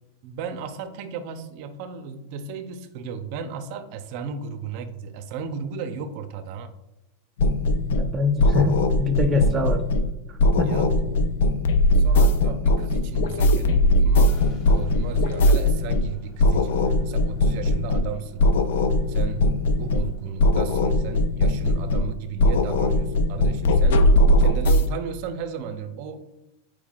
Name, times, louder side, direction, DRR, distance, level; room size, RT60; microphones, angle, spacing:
voice 1, 0.2-6.7 10.6-11.4 11.9-18.5 19.1-24.1 24.4-26.3, right 6 dB, 50° right, 0.6 m, -35 dB
sound 1, 7.4-8.1 8.4-10.1 10.4-16.1 16.4-18.1 18.4-20.1 20.4-22.1 22.4-24.8, left 1 dB, 75° left, 0.5 m, -20 dB
voice 2, 7.9-9.8 10.6-10.9, left 2 dB, 15° right, 0.4 m, -24 dB
sound 2, 14.2-21.3, left 3 dB, 30° left, 1.0 m, -46 dB
8.9 x 4.6 x 2.4 m
supercardioid pair, 150°, 0 cm